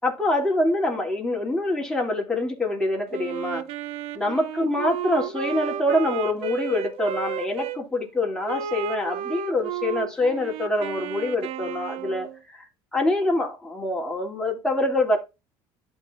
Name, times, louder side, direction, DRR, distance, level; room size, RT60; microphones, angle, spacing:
voice 1, 0.0-3.6 4.1-12.7 12.9-15.2, left 1 dB, 5° left, 3.0 m, -25 dB
Wind instrument woodwind instrument, 3.1-7.8 8.5-12.4, right 9 dB, 65° right, 0.8 m, -32 dB
11.5 x 4.6 x 2.6 m
supercardioid pair, 100°, 11 cm